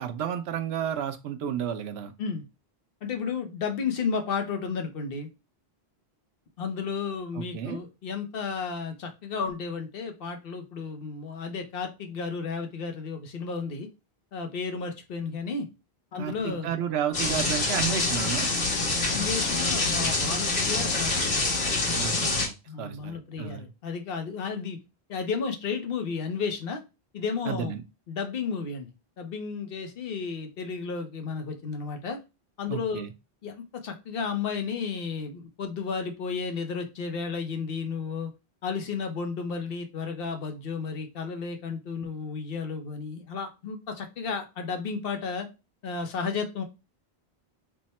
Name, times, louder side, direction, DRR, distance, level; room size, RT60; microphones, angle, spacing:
voice 1, 0.0-2.1 7.3-7.8 16.2-18.5 21.9-23.7 27.5-27.8 32.7-33.1, right 9 dB, 90° right, 8 dB, 0.8 m, -32 dB
voice 2, 3.0-5.3 6.6-13.9 14.3-15.7 16.1-16.7 19.1-21.1 22.2-22.3 22.7-24.8 25.1-26.8 27.1-27.8 28.1-28.9 29.2-32.2 32.6-33.1 33.4-38.3 38.6-45.5 45.8-46.6, left 5 dB, 65° left, 5 dB, 0.9 m, -33 dB
sound 1, 17.1-22.5, left 3 dB, 85° left, 1.6 m, -26 dB
3.5 x 2.1 x 4.1 m, 0.27 s
omnidirectional pair, 1.0 m